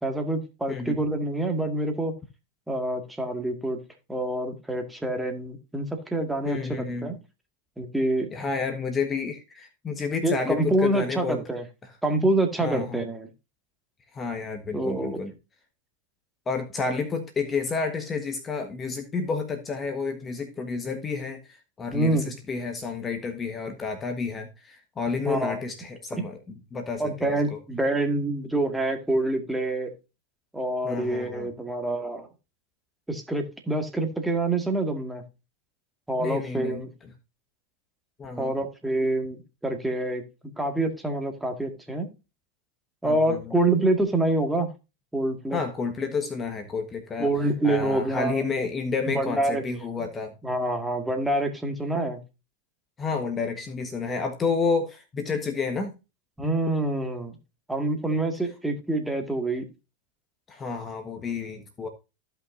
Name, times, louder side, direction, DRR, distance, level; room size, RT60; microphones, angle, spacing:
voice 1, 0.0-2.1 2.7-3.8 4.1-7.2 7.8-8.3 10.2-11.6 12.0-13.3 14.7-15.2 21.9-22.3 25.3-25.6 26.1-26.3 27.0-29.9 30.5-32.3 33.1-35.2 36.1-36.9 38.4-40.2 40.6-42.1 43.0-44.7 45.1-45.6 47.2-48.5 49.1-49.6 50.4-52.2 56.4-57.3 57.7-59.6, right 2 dB, 5° right, 1.9 m, -26 dB
voice 2, 6.4-7.1 8.3-11.4 12.6-13.0 14.1-15.3 16.5-27.6 30.8-31.5 36.2-36.8 38.2-38.6 43.0-43.5 45.5-47.3 47.6-50.3 53.0-55.9 60.5-61.9, left 4 dB, 25° left, 1.3 m, -30 dB
15.0 x 5.6 x 2.6 m
hypercardioid pair, 105°, 0 cm